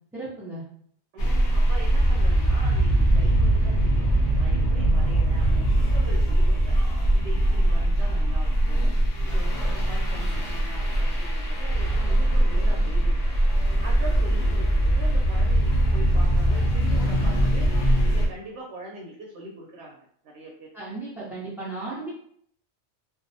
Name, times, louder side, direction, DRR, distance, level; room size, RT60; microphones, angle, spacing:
voice 1, 0.1-0.6 20.7-22.1, right 3 dB, 5° right, -11 dB, 0.4 m, -35 dB
voice 2, 1.1-4.1 4.4-6.7 7.1-8.9 9.2-13.3 13.8-17.7 18.1-20.0 20.2-20.7, right 2 dB, 75° right, -2 dB, 0.9 m, -42 dB
sound 1, 1.2-18.3, right 1 dB, 65° left, 0.8 m, -21 dB
2.4 x 2.0 x 2.6 m, 0.64 s
omnidirectional pair, 1.2 m